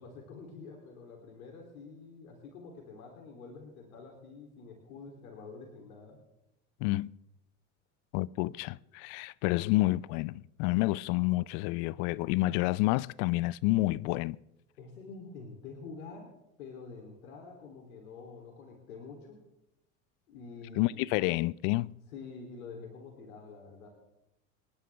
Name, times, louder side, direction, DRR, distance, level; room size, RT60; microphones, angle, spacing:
voice 1, 0.0-6.2 14.8-16.3 16.6-19.4 20.3-21.0 22.1-23.9, left 4 dB, 80° left, 3.3 m, -47 dB
voice 2, 6.8-7.1 8.1-14.4 20.8-21.9, left 19 dB, 60° left, 0.6 m, -29 dB
26.0 x 11.5 x 3.5 m
hypercardioid pair, 85°, 42 cm